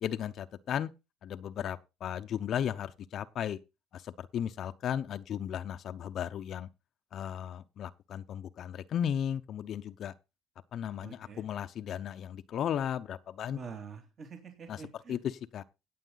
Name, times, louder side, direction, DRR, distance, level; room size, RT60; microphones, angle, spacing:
voice 1, 0.0-0.9 1.2-3.6 3.9-6.7 7.1-10.1 10.7-13.6 14.7-14.8 15.1-15.6, left 9 dB, 50° left, 0.7 m, -35 dB
voice 2, 11.0-11.4 13.5-15.2, right 5 dB, 40° right, 2.7 m, -46 dB
17.0 x 7.2 x 4.0 m
supercardioid pair, 100°, 0 cm